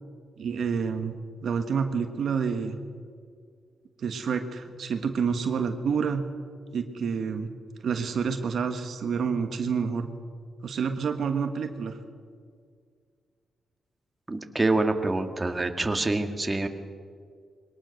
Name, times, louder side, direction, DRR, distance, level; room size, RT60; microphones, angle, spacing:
voice 1, 0.4-1.2 1.4-2.8 4.0-6.2 6.7-7.5 7.8-10.1 10.6-12.0, right 6 dB, 70° right, 6 dB, 1.4 m, -28 dB
voice 2, 14.3-16.7, right 2 dB, 20° right, 5 dB, 2.0 m, -26 dB
22.0 x 18.0 x 6.5 m, 2.1 s
cardioid pair, 75°, 0 cm